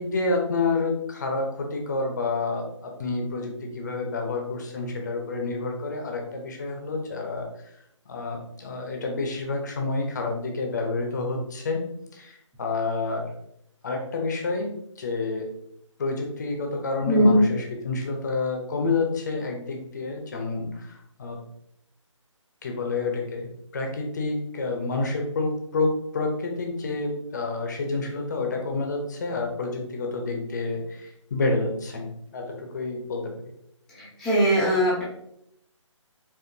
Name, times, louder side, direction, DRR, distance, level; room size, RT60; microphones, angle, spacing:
voice 1, 0.0-7.7 8.1-13.3 13.8-15.5 16.0-21.4 22.6-32.1 32.3-33.3, left 3 dB, 35° left, 2 dB, 0.8 m, -29 dB
voice 2, 17.1-17.4 34.0-35.0, equal, 5° left, -9 dB, 0.7 m, -20 dB
4.7 x 3.0 x 2.7 m, 0.75 s
figure-of-eight pair, 160°, 16 cm